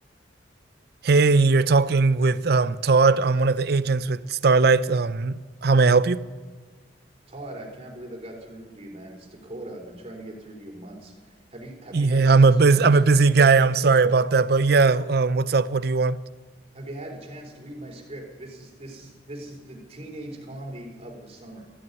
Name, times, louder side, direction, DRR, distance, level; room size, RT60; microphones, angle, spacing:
voice 1, 1.0-6.2 11.9-16.2, right 4 dB, 60° right, 0.5 m, -19 dB
voice 2, 7.3-13.0 16.7-21.7, right 1 dB, 35° right, 3.4 m, -40 dB
14.0 x 11.0 x 9.4 m
head